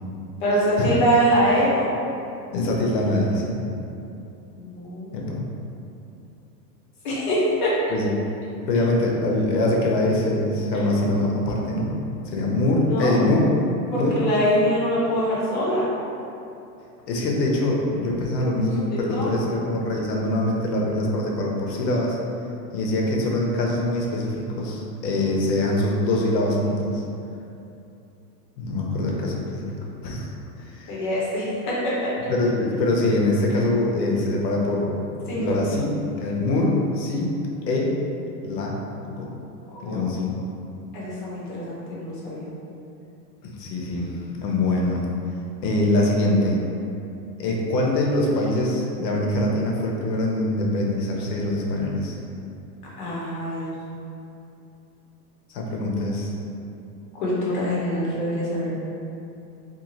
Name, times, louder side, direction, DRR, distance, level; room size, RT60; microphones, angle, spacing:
voice 1, 0.4-1.9 4.5-5.3 7.0-7.7 12.9-13.1 13.9-15.9 18.6-19.5 29.0-29.1 30.9-32.1 35.3-35.4 39.7-40.1 40.9-42.5 53.0-53.7 57.1-58.7, equal, 30° left, -7 dB, 0.5 m, -24 dB
voice 2, 2.5-3.6 5.1-5.4 7.9-8.1 8.7-11.9 12.3-13.4 14.0-14.2 17.1-22.2 22.7-27.0 28.6-29.7 30.0-30.3 30.6-30.9 32.3-34.9 35.3-35.9 36.2-37.3 37.7-37.9 38.4-38.8 39.1-39.3 39.8-40.3 43.4-44.1 44.4-45.0 45.6-46.6 47.4-52.2 55.5-56.3, left 1 dB, 85° left, -1 dB, 0.8 m, -23 dB
2.6 x 2.4 x 2.9 m, 2.7 s
supercardioid pair, 160°, 49 cm